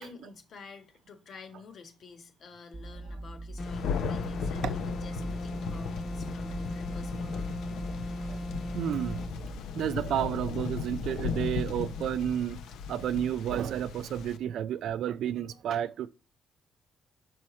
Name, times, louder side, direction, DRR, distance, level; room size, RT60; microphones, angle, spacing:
voice 1, 0.0-7.5, left 4 dB, 55° left, 1.4 m, -50 dB
sound 1, 2.7-9.6, right 2 dB, 30° right, 0.7 m, -42 dB
Thunder, 3.6-14.4, left 6 dB, 80° left, 0.6 m, -36 dB
sound 2, 3.6-9.4, left 1 dB, 30° left, 1.0 m, -38 dB
voice 2, 8.1-9.2 9.7-12.6 12.9-16.1, right 10 dB, 75° right, 0.4 m, -31 dB
6.3 x 4.6 x 4.2 m
cardioid pair, 90°, 0 cm